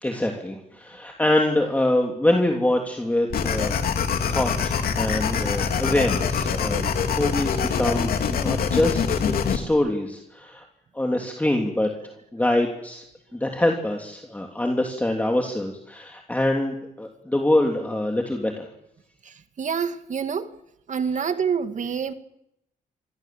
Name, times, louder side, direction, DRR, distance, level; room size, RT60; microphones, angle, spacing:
voice 1, 0.0-3.8 4.3-6.9 7.2-10.6 10.9-11.9 12.3-13.0 13.3-18.7, left 1 dB, 10° left, 3.1 m, -24 dB
sound 1, 3.3-9.6, left 6 dB, 75° left, 3.0 m, -24 dB
voice 2, 19.2-20.5 20.9-22.1, right 6 dB, 55° right, 2.0 m, -27 dB
27.5 x 24.0 x 7.8 m
cardioid pair, 110°, 15 cm